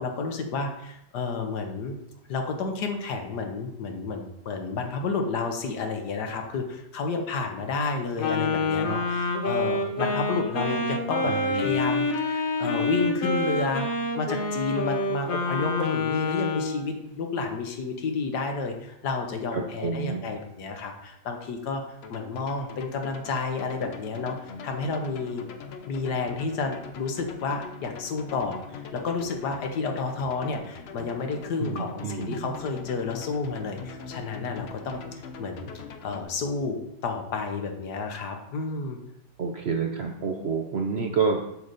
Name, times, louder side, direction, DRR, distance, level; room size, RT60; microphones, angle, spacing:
voice 1, 0.0-2.0 2.3-13.9 14.2-25.4 25.9-35.7 36.0-39.0, left 4 dB, 75° left, 4 dB, 1.6 m, -31 dB
Wind instrument woodwind instrument, 8.2-16.8, left 2 dB, 35° left, 1.0 m, -27 dB
voice 2, 11.3-11.7 19.5-20.2 31.6-32.5 39.4-41.5, right 5 dB, 60° right, 3 dB, 0.7 m, -29 dB
sound 1, 22.0-36.2, left 5 dB, 60° left, 0.7 m, -42 dB
7.7 x 4.0 x 6.7 m, 0.82 s
omnidirectional pair, 1.8 m